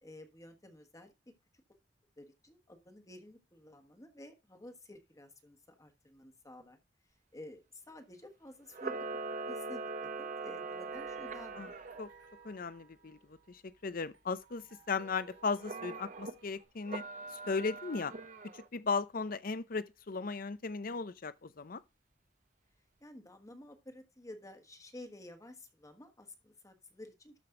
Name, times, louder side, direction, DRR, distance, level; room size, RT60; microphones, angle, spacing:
voice 1, 0.0-1.1 2.2-6.8 7.3-9.0 9.5-9.8 10.2-11.7 23.0-27.3, left 1 dB, 20° left, 1.4 m, -52 dB
Camera, 8.7-12.0 15.6-16.3 16.8-18.7, right 3 dB, 45° right, 0.9 m, -41 dB
sound 1, 10.9-16.6, right 4 dB, 80° right, 2.6 m, -58 dB
voice 2, 12.4-13.2 13.5-17.0 17.5-18.1 18.5-21.8, left 4 dB, 55° left, 0.7 m, -36 dB
13.0 x 5.3 x 3.7 m
head